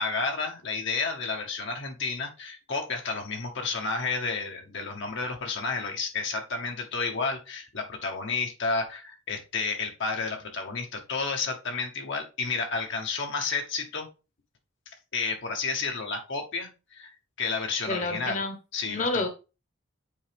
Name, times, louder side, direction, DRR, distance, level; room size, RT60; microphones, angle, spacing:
voice 1, 0.0-14.1 15.1-18.4 18.7-19.3, left 4 dB, 60° left, 1.0 m, -31 dB
voice 2, 17.9-18.5 18.9-19.3, left 2 dB, 40° left, 1.0 m, -29 dB
8.5 x 4.0 x 3.4 m
head